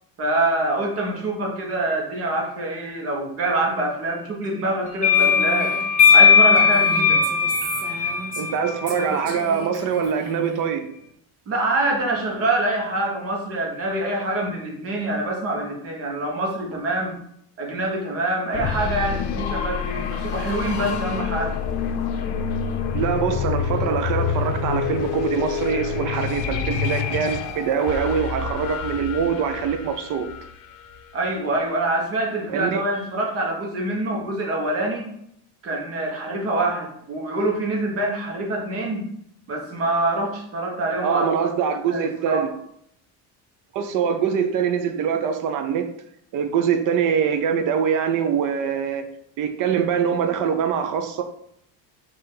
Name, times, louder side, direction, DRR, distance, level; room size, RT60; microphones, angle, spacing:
voice 1, 0.2-5.7 6.1-7.2 11.5-17.2 17.6-21.6 31.1-35.1 35.6-39.1 39.5-41.3 41.9-42.5, right 2 dB, 35° right, 0 dB, 0.9 m, -25 dB
sound 1, 5.0-9.4, left 6 dB, 20° left, 0.5 m, -18 dB
Female speech woman speaking, 5.1-8.6 8.9-10.7, right 3 dB, 75° right, 1.3 m, -35 dB
voice 2, 8.4-10.9 22.9-30.3 32.5-32.8 41.0-42.5 43.7-45.9 46.3-49.1 49.4-51.2, right 7 dB, 50° right, 7 dB, 0.5 m, -23 dB
sound 2, 18.5-31.2, left 7 dB, 70° left, 0.6 m, -27 dB
4.2 x 2.5 x 3.8 m, 0.71 s
cardioid pair, 165°, 40 cm